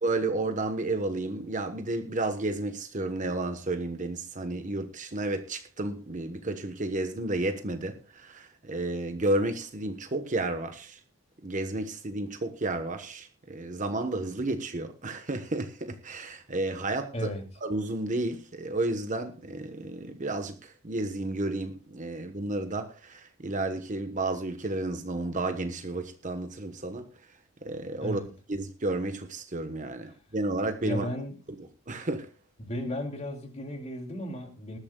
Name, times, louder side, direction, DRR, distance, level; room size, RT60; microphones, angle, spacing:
voice 1, 0.0-11.0 11.4-17.3 17.6-27.1 27.6-28.2 28.5-31.1 31.9-32.3, right 2 dB, 35° right, 1.2 m, -32 dB
voice 2, 17.1-17.4 28.0-28.3 30.8-31.3 32.6-34.8, equal, 30° left, 2.6 m, -34 dB
20.0 x 12.5 x 2.3 m
head